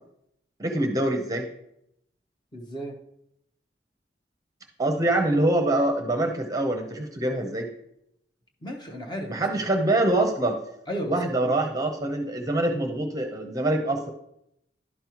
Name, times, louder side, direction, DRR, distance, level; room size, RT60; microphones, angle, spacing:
voice 1, 0.6-1.5 4.8-7.7 9.3-10.6 11.1-14.1, right 1 dB, 20° right, 3 dB, 0.7 m, -24 dB
voice 2, 2.5-2.9 8.6-9.4 10.9-11.7, equal, 25° left, 2 dB, 1.0 m, -34 dB
11.0 x 5.4 x 3.0 m, 0.78 s
head